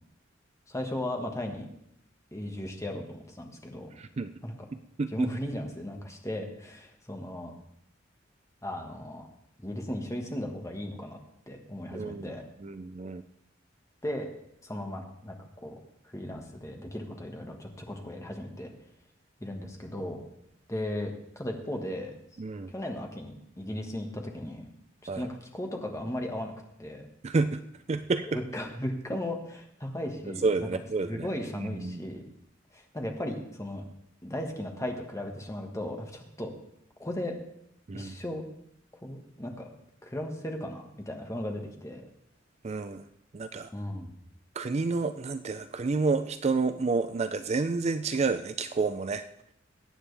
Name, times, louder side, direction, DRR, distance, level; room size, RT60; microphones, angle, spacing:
voice 1, 0.7-1.7 2.3-3.9 4.4-4.5 5.1-7.5 8.6-9.3 9.6-11.2 11.5-12.4 14.0-14.3 14.6-15.7 16.0-18.7 19.4-20.2 20.7-22.1 22.7-24.7 25.1-26.5 26.8-27.1 28.3-30.7 31.0-32.2 32.7-33.8 34.2-36.5 37.0-37.4 37.9-38.4 39.0-39.7 40.0-42.1 43.7-44.1, left 1 dB, 15° left, 2 dB, 1.6 m, -36 dB
voice 2, 4.0-4.3 5.0-5.3 11.9-12.3 12.6-13.2 22.4-22.7 25.1-25.3 27.2-27.6 27.9-28.4 30.4-31.2 31.6-32.0 37.9-38.2 42.6-43.1 43.3-43.7 44.6-49.2, right 4 dB, 35° right, 10 dB, 0.4 m, -29 dB
21.5 x 9.0 x 3.4 m, 0.74 s
head